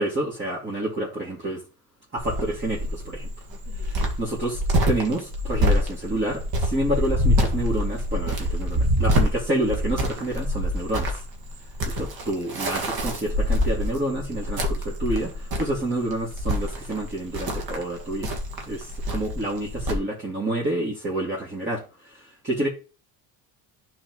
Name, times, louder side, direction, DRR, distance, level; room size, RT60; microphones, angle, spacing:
voice 1, 0.0-1.6 2.1-3.3 3.7-11.2 11.8-18.3 18.7-22.7, right 1 dB, 25° right, 2.7 m, -29 dB
Cricket, 2.2-19.9, equal, 50° right, 2.1 m, -26 dB
11.5 x 4.6 x 3.2 m
supercardioid pair, 100°, 46 cm